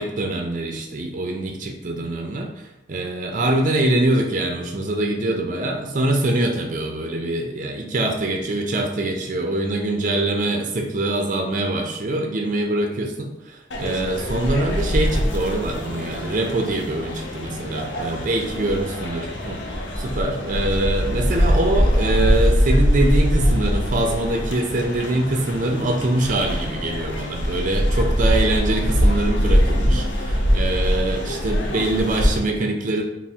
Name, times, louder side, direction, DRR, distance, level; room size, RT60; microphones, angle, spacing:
voice 1, 0.0-2.5 2.9-13.3 13.8-19.6 20.0-33.0, right 2 dB, 45° right, 2 dB, 0.5 m, -24 dB
sound 1, 13.7-32.4, equal, 80° left, 0.6 m, -22 dB
3.5 x 2.0 x 4.2 m, 0.92 s
head